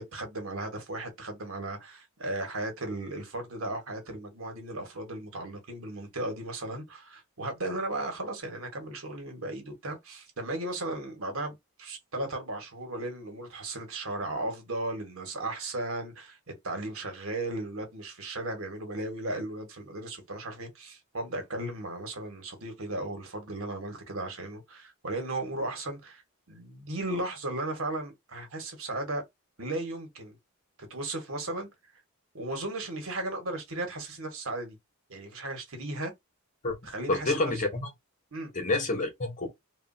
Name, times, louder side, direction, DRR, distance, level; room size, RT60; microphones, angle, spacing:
voice 1, 0.0-26.2 26.5-29.2 29.6-30.4 30.9-31.7 32.3-34.8 35.1-36.1 36.8-37.5 38.3-38.5, right 2 dB, 70° right, 1.3 m, -36 dB
voice 2, 37.1-37.9 38.5-39.5, left 2 dB, 35° left, 0.9 m, -28 dB
3.1 x 2.5 x 2.6 m
head